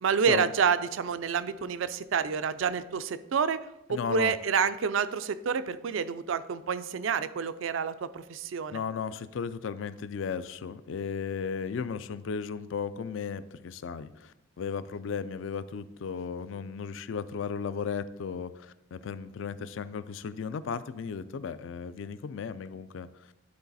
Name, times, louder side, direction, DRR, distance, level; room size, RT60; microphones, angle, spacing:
voice 1, 0.0-3.6 3.9-8.8, right 6 dB, 75° right, 13 dB, 0.4 m, -28 dB
voice 2, 3.9-4.3 8.7-23.3, left 6 dB, 70° left, 14 dB, 0.4 m, -35 dB
11.5 x 3.9 x 4.0 m, 0.91 s
head